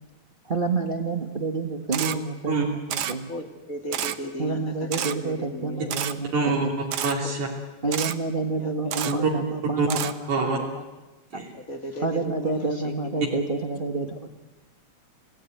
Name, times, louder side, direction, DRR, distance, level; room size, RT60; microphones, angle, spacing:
voice 1, 0.5-2.8 3.1-3.3 4.4-6.3 6.6-6.7 7.8-10.1 10.4-10.5 11.3-11.4 12.0-14.3, right 3 dB, 30° right, 5 dB, 0.9 m, -28 dB
Camera, 1.9-2.2 2.9-3.1 3.9-4.2 4.9-5.1 5.9-6.1 6.9-7.1 7.9-8.1 8.9-9.1 9.9-10.1, right 10 dB, 65° right, 1.8 m, -28 dB
voice 2, 3.3-5.9 7.8-8.0 8.5-8.9 11.5-13.4, left 1 dB, 30° left, 5 dB, 2.4 m, -36 dB
voice 3, 6.3-6.7 7.0-7.5 9.0-9.3 9.8-9.9 10.3-10.6 11.3-11.5, right 3 dB, 85° right, -2 dB, 4.5 m, -25 dB
29.5 x 18.0 x 9.3 m, 1.1 s
omnidirectional pair, 3.3 m